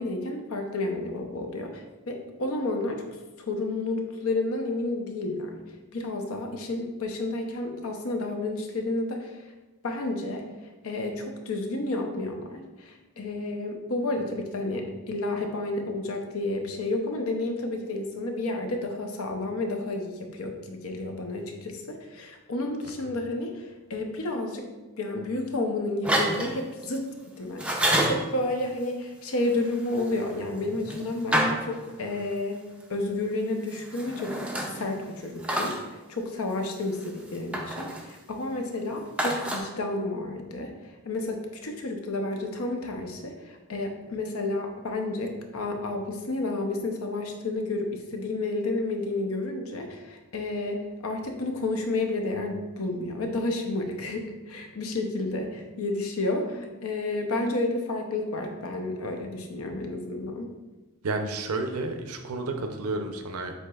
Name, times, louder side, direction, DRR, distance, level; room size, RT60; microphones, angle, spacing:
voice 1, 0.0-3.0 3.4-5.6 5.9-9.4 9.8-10.4 10.8-24.7 25.0-27.1 27.4-32.6 32.9-34.4 34.7-60.5, left 2 dB, 70° left, 4 dB, 0.6 m, -31 dB
sound 1, 26.0-27.0 27.6-28.3 29.5-32.2 33.7-35.0 35.4-35.8 37.0-38.1 39.2-39.6, right 1 dB, 5° right, 0.4 m, -28 dB
voice 2, 61.0-63.5, right 2 dB, 75° right, 5 dB, 0.5 m, -31 dB
7.8 x 2.9 x 2.3 m, 1.2 s
head